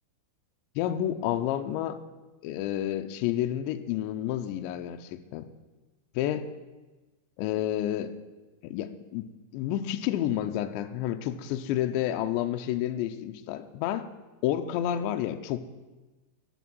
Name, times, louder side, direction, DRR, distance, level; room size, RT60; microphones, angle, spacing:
voice 1, 0.8-2.0 2.4-5.5 6.2-6.4 7.4-8.1 8.6-9.3 9.5-14.1 14.4-15.6, left 11 dB, 85° left, 8 dB, 2.6 m, -30 dB
11.0 x 10.0 x 6.1 m, 1.2 s
omnidirectional pair, 5.9 m